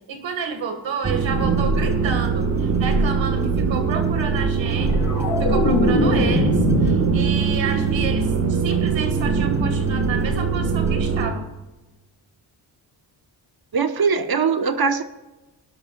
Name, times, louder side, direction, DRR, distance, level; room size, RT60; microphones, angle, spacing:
voice 1, 0.1-4.9 5.4-11.5, right 5 dB, 85° right, 6 dB, 1.9 m, -30 dB
sound 1, 1.0-11.3, right 5 dB, 35° right, 1.7 m, -22 dB
sound 2, 4.7-7.8 8.2-8.6, left 2 dB, 65° left, 3.4 m, -23 dB
voice 2, 13.7-15.0, right 5 dB, 55° right, 9 dB, 1.2 m, -21 dB
19.5 x 11.5 x 2.4 m, 1.1 s
cardioid pair, 55°, 44 cm